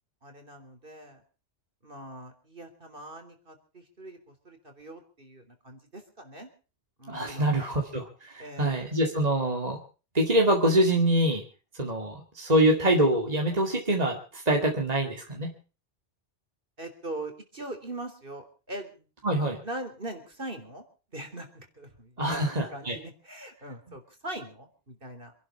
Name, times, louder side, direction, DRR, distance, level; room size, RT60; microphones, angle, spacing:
voice 1, 0.2-1.2 1.8-6.5 7.0-7.7 8.4-8.9 16.8-19.0 19.6-20.8 21.1-25.3, right 1 dB, 50° right, 6 dB, 3.6 m, -41 dB
voice 2, 7.1-9.8 10.1-11.4 11.8-15.5 19.2-19.6 22.2-23.0, right 1 dB, 35° right, 1 dB, 2.5 m, -25 dB
26.5 x 12.0 x 4.4 m, 0.37 s
omnidirectional pair, 1.2 m